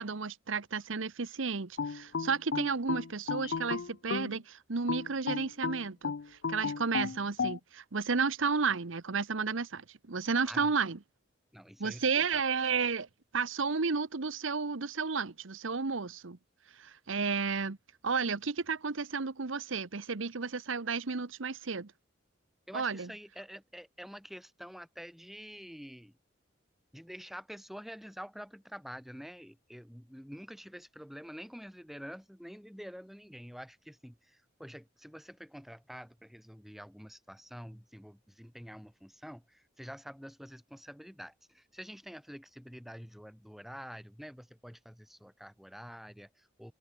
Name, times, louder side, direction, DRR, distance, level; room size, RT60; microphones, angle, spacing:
voice 1, 0.0-11.0 11.8-13.1 13.3-16.4 16.8-17.8 18.0-21.9 22.7-23.1, right 5 dB, 80° right, 1.0 m, -32 dB
sound 1, 1.8-4.4 4.9-7.6, left 5 dB, 60° left, 0.5 m, -34 dB
voice 2, 11.5-12.4 22.7-26.2 26.9-46.7, equal, ahead, 6.3 m, -47 dB
head